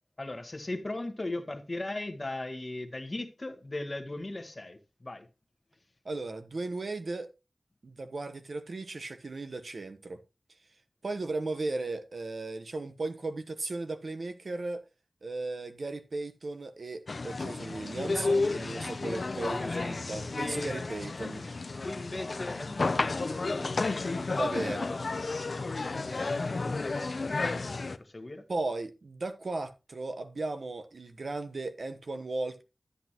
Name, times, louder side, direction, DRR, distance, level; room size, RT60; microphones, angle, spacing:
voice 1, 0.2-5.3 19.4-20.9 21.8-27.4 27.7-28.4, left 2 dB, 40° left, 1.4 m, -39 dB
voice 2, 6.0-7.3 7.8-10.2 11.0-14.8 15.2-21.5 24.3-24.9 28.5-32.6, right 2 dB, 75° right, 1.0 m, -36 dB
sound 1, 17.1-28.0, left 3 dB, 65° left, 0.6 m, -32 dB
11.5 x 8.1 x 3.0 m
wide cardioid pair, 80°, 0 cm